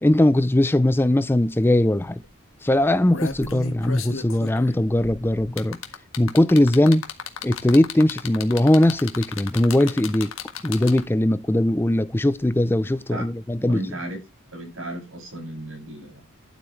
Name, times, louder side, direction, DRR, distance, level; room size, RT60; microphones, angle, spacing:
voice 1, 0.0-2.2 2.6-5.8 6.2-7.0 7.4-10.3 10.6-13.8, left 1 dB, 10° left, 0.4 m, -20 dB
sound 1, 1.6-1.7 2.0-2.2 2.8-11.2 12.4-12.5, left 5 dB, 65° left, 1.7 m, -35 dB
voice 2, 13.7-14.2 14.5-16.2, right 1 dB, 65° right, 7.0 m, -34 dB
12.0 x 8.3 x 3.2 m
head